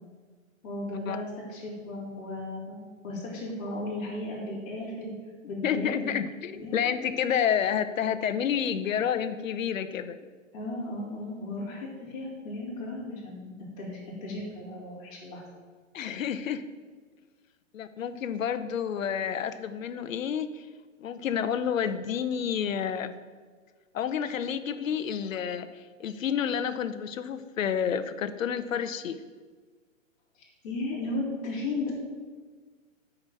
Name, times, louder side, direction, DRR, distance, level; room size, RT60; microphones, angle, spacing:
voice 1, 0.6-5.1 5.5-6.2 6.5-7.0 10.5-15.5 30.4-31.9, left 2 dB, 30° left, -6 dB, 3.3 m, -35 dB
voice 2, 5.6-10.2 15.9-16.6 17.7-20.7 21.0-23.1 23.9-29.2, left 8 dB, 75° left, 11 dB, 0.8 m, -29 dB
8.8 x 5.1 x 7.5 m, 1.5 s
hypercardioid pair, 170°, 40 cm